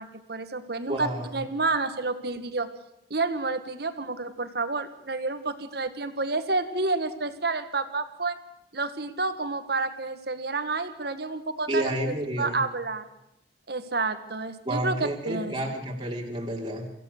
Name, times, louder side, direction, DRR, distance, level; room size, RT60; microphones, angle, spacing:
voice 1, 0.0-2.7 3.1-8.4 8.7-11.8 12.4-13.0 13.7-15.5, right 3 dB, 65° right, 10 dB, 1.9 m, -29 dB
voice 2, 0.9-1.4 11.7-12.6 14.6-16.9, right 1 dB, 25° right, -1 dB, 3.2 m, -30 dB
25.0 x 16.0 x 6.8 m, 0.85 s
head